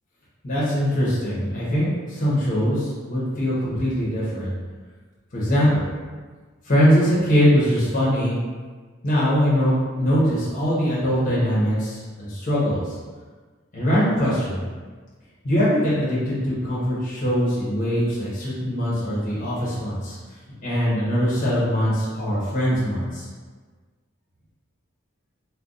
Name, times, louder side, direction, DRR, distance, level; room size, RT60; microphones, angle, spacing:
voice 1, 0.4-4.5 5.3-5.9 6.6-8.4 9.0-12.9 13.7-14.6 15.4-20.2 20.6-23.3, equal, 40° left, -8 dB, 0.8 m, -22 dB
2.4 x 2.2 x 3.8 m, 1.4 s
head